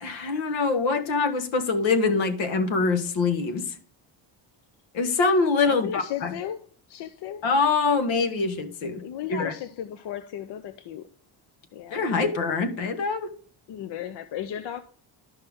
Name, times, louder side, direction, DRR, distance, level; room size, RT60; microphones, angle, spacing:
voice 1, 0.0-3.7 4.9-6.3 7.4-9.0 9.3-9.5 11.9-13.3, left 4 dB, 80° left, 1.4 m, -24 dB
voice 2, 5.7-7.4 8.8-11.1 11.7-12.1 12.8-12.9 13.7-14.8, left 10 dB, 65° left, 0.7 m, -35 dB
12.0 x 5.6 x 3.5 m
cardioid pair, 155°, 45 cm